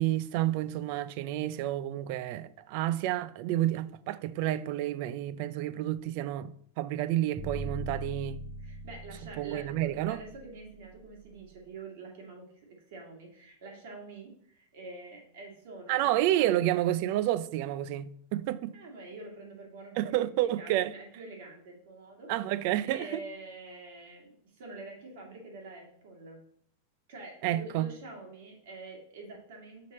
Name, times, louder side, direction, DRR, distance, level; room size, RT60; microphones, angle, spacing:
voice 1, 0.0-8.4 9.4-10.2 15.9-18.7 20.0-20.9 22.3-23.1 27.4-27.9, right 13 dB, 40° right, 0.3 m, -30 dB
sound 1, 7.4-11.5, right 1 dB, 15° right, 0.7 m, -41 dB
voice 2, 8.6-16.5 18.7-22.3 22.8-26.4 27.1-29.9, right 3 dB, 60° right, 2.1 m, -46 dB
5.8 x 4.9 x 4.2 m
supercardioid pair, 170°, 0 cm